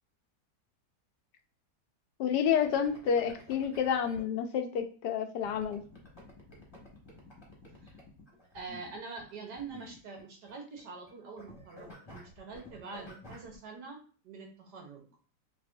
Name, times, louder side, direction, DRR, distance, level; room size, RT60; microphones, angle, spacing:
voice 1, 2.2-5.8, left 7 dB, 85° left, 6 dB, 1.3 m, -29 dB
sound 1, 2.6-4.2 5.4-10.5 10.8-11.1 11.4-13.5, left 1 dB, 20° left, 1.2 m, -52 dB
voice 2, 8.5-15.1, right 4 dB, 85° right, 1 dB, 1.7 m, -45 dB
5.3 x 3.0 x 2.6 m, 0.40 s
omnidirectional pair, 1.8 m